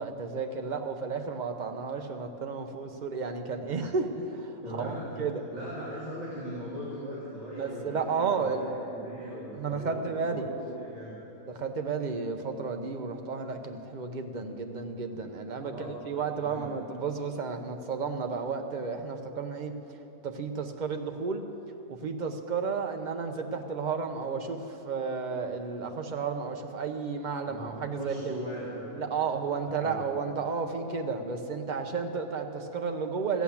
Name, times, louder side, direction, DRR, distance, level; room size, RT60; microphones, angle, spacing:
voice 1, 0.0-5.4 7.6-8.7 9.5-10.5 11.5-20.0 20.2-21.4 21.9-28.3 28.9-33.4, right 5 dB, 50° right, 5 dB, 0.5 m, -32 dB
voice 2, 4.6-5.2 5.5-11.1 15.6-16.0 16.4-16.7 27.4-28.9 29.8-30.0, equal, 20° right, -8 dB, 2.3 m, -39 dB
14.5 x 8.2 x 7.1 m, 3.0 s
omnidirectional pair, 1.8 m